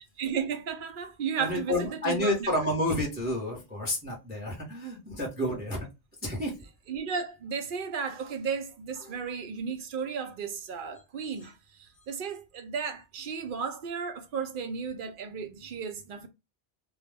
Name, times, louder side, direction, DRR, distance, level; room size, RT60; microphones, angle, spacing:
voice 1, 0.2-2.5 6.9-16.3, right 6 dB, 60° right, 0.6 m, -34 dB
voice 2, 1.4-5.9 6.2-6.6 9.0-9.2, left 1 dB, 10° right, 0.7 m, -30 dB
2.3 x 2.0 x 3.3 m
omnidirectional pair, 1.2 m